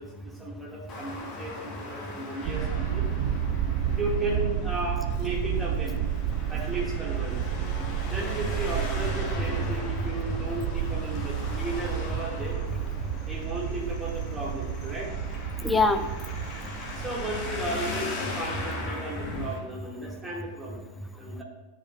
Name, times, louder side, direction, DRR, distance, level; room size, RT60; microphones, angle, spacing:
voice 1, 0.0-3.1 3.9-6.0 6.5-7.4 8.0-12.6 13.3-15.1 17.0-20.8 21.2-21.4, right 1 dB, 10° right, -3 dB, 1.8 m, -35 dB
Traffic noise roadway noise, 0.9-19.6, left 2 dB, 30° left, 1.4 m, -39 dB
sound 1, 2.4-18.9, right 9 dB, 45° right, 0.3 m, -31 dB
voice 2, 9.3-10.1 12.4-13.1 15.6-16.1 21.0-21.1, left 3 dB, 5° left, 6 dB, 0.5 m, -28 dB
10.0 x 4.7 x 2.3 m, 1.1 s
figure-of-eight pair, 90°, 0 cm